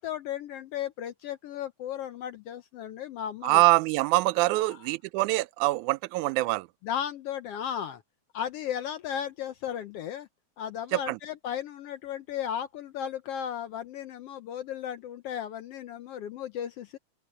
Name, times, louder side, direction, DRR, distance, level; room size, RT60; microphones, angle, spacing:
voice 1, 0.0-3.6 4.5-4.9 6.8-8.0 8.3-10.3 10.6-17.0, left 9 dB, 70° left, 1.4 m, -35 dB
voice 2, 3.4-6.7 10.9-11.2, right 20 dB, 85° right, 2.0 m, -24 dB
open air
omnidirectional pair, 3.4 m